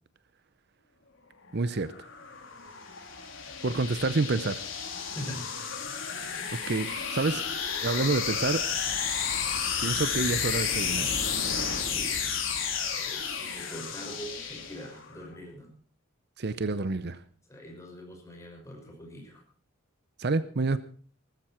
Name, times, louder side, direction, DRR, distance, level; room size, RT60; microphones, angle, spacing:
voice 1, 1.5-2.1 3.6-4.6 6.7-7.4 7.8-8.6 9.8-11.3 16.4-17.2 20.2-20.8, right 3 dB, 50° right, 13 dB, 0.7 m, -28 dB
sound 1, 1.7-15.1, left 6 dB, 70° left, 3.6 m, -32 dB
voice 2, 5.1-5.5 11.9-12.2 13.0-15.7 17.5-19.4, equal, 15° left, 0 dB, 6.0 m, -43 dB
19.0 x 13.5 x 4.5 m, 0.44 s
head